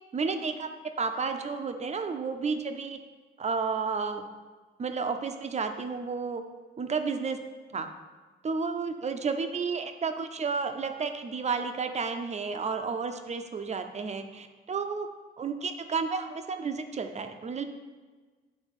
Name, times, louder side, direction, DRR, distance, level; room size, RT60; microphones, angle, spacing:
voice 1, 0.1-0.7 1.0-3.0 3.4-4.2 4.8-6.4 6.8-7.4 7.7-7.9 8.4-15.1 15.4-17.6, right 5 dB, 35° right, 7 dB, 0.6 m, -31 dB
7.2 x 3.5 x 5.3 m, 1.4 s
cardioid pair, 90°, 20 cm